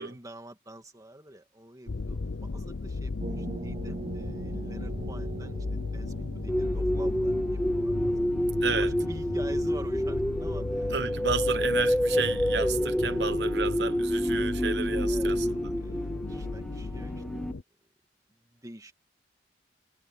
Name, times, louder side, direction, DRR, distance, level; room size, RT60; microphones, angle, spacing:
voice 1, 0.0-8.3 8.8-10.9 13.1-13.2 15.0-15.4 15.7-17.4 18.4-18.9, right 1 dB, 20° right, 2.4 m, -47 dB
sound 1, 1.9-17.6, left 3 dB, 85° left, 0.7 m, -36 dB
sound 2, 3.2-8.6, right 2 dB, 40° right, 0.7 m, -40 dB
sound 3, 6.5-17.5, equal, 5° left, 0.9 m, -28 dB
voice 2, 8.6-8.9 10.9-15.5, right 5 dB, 65° right, 1.1 m, -32 dB
head